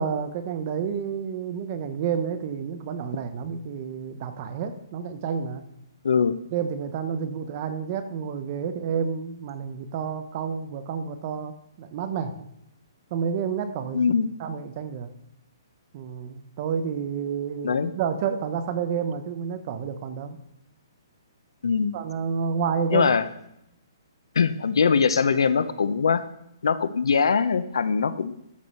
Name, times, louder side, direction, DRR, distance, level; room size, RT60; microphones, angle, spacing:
voice 1, 0.0-5.6 6.5-11.5 11.8-12.5 13.1-14.0 14.4-15.1 15.9-20.4 21.9-23.1, right 7 dB, 25° right, 8 dB, 0.8 m, -29 dB
voice 2, 6.0-6.4 13.9-14.3 17.6-17.9 21.6-21.9 22.9-23.3 24.3-26.2 26.6-28.3, left 5 dB, 85° left, 13 dB, 0.9 m, -22 dB
12.5 x 4.9 x 5.6 m, 0.79 s
hypercardioid pair, 180°, 3 cm